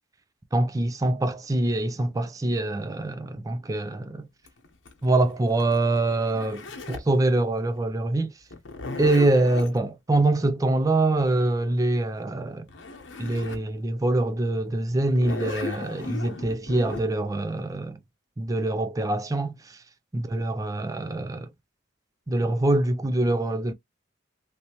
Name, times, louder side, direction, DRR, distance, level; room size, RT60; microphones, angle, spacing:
voice 1, 0.5-4.3 5.0-8.3 9.0-12.6 13.2-18.0 18.4-19.8 20.1-21.5 22.3-23.7, right 2 dB, 20° right, 0.4 m, -24 dB
Zipper (clothing), 4.5-7.2 8.5-9.8 12.4-12.5 12.7-13.7 14.2-14.3 15.0-17.0, left 3 dB, 75° left, 0.9 m, -36 dB
3.3 x 2.7 x 2.8 m
head